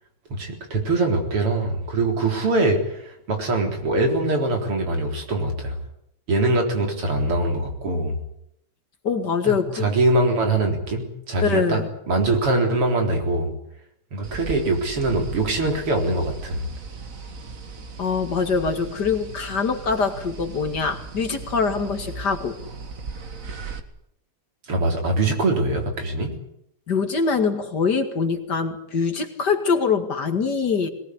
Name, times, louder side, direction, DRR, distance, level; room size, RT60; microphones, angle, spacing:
voice 1, 0.3-5.7 6.3-8.1 9.5-11.8 12.1-13.5 14.1-16.7 24.7-26.3, right 2 dB, 80° right, 3 dB, 4.9 m, -23 dB
voice 2, 9.0-9.9 11.4-11.9 18.0-22.6 26.9-30.9, left 5 dB, 50° left, 7 dB, 2.5 m, -23 dB
sound 1, 14.2-23.8, right 4 dB, 40° right, 2.0 m, -37 dB
22.0 x 18.5 x 9.9 m, 0.75 s
omnidirectional pair, 2.4 m